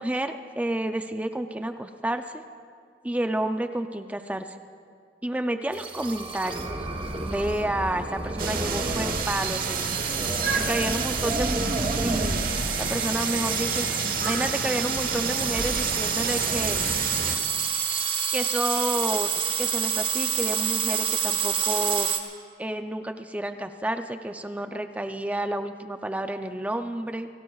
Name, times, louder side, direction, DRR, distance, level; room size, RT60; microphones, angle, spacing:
voice 1, 0.0-2.4 3.0-4.5 5.2-6.7 7.2-10.1 10.6-11.6 12.0-12.4 12.8-16.9 18.3-19.3 19.6-22.1 22.6-27.3, right 1 dB, 10° right, 7 dB, 0.4 m, -30 dB
sound 1, 5.7-22.2, right 5 dB, 30° right, 1.0 m, -29 dB
sound 2, 8.4-17.4, right 5 dB, 55° right, 1.0 m, -30 dB
29.5 x 17.5 x 2.4 m, 2.2 s
head